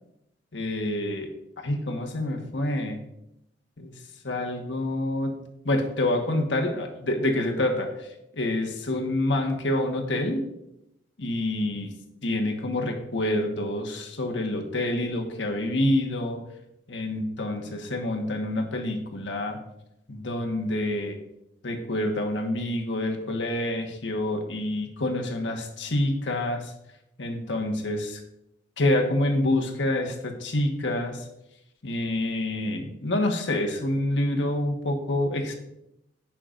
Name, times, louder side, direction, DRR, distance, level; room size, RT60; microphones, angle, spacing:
voice 1, 0.5-1.3 1.6-3.0 3.8-3.9 4.2-10.4 11.2-11.9 12.2-16.4 16.9-19.6 20.1-21.2 21.6-26.7 27.2-28.2 28.8-31.3 31.8-35.5, left 1 dB, 90° left, 2 dB, 1.4 m, -27 dB
17.5 x 5.9 x 2.6 m, 0.84 s
head